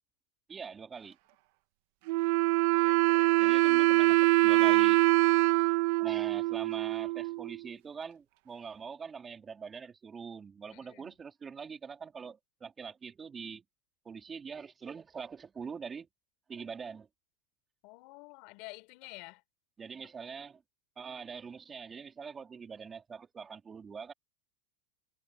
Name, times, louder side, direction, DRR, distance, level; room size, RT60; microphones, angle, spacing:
voice 1, 0.5-1.2 3.4-5.0 6.0-13.6 14.1-16.1 16.5-17.1 19.8-20.6 21.0-24.1, right 6 dB, 20° right, 3.4 m, -43 dB
Wind instrument woodwind instrument, 2.1-7.6, right 21 dB, 60° right, 1.1 m, -24 dB
voice 2, 2.7-3.6 3.8-4.2 10.7-11.1 17.8-19.4, left 26 dB, 55° left, 4.5 m, -50 dB
supercardioid pair, 135°, 0 cm